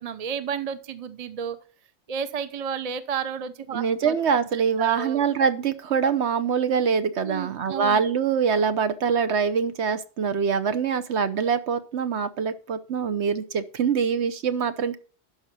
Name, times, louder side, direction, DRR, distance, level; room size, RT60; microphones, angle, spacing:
voice 1, 0.0-1.6 2.1-4.2 4.5-5.2 7.2-8.0, right 7 dB, 35° right, 11 dB, 0.7 m, -32 dB
voice 2, 3.7-15.0, right 6 dB, 70° right, 10 dB, 1.1 m, -24 dB
12.0 x 5.1 x 6.0 m, 0.39 s
omnidirectional pair, 1.2 m